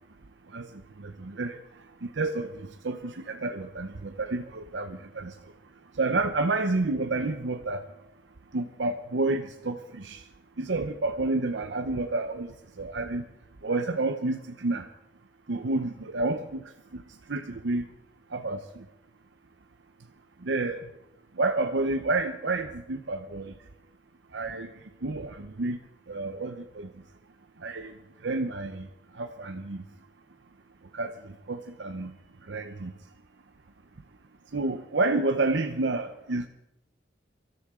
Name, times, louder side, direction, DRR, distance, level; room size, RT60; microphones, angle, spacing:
voice 1, 1.0-1.6 2.2-2.5 2.8-5.3 6.0-7.8 8.5-10.2 10.6-12.5 12.8-13.2 13.6-14.9 15.5-16.6 17.3-17.8 18.3-18.8 20.4-20.8 21.4-23.5 24.3-24.7 25.0-25.8 26.1-26.9 27.6-27.9 28.2-28.9 29.2-29.8 30.9-31.1 31.5-32.1 32.5-32.9 34.5-36.5, right 2 dB, 75° right, 6 dB, 0.8 m, -29 dB
23.5 x 13.5 x 3.7 m, 0.86 s
head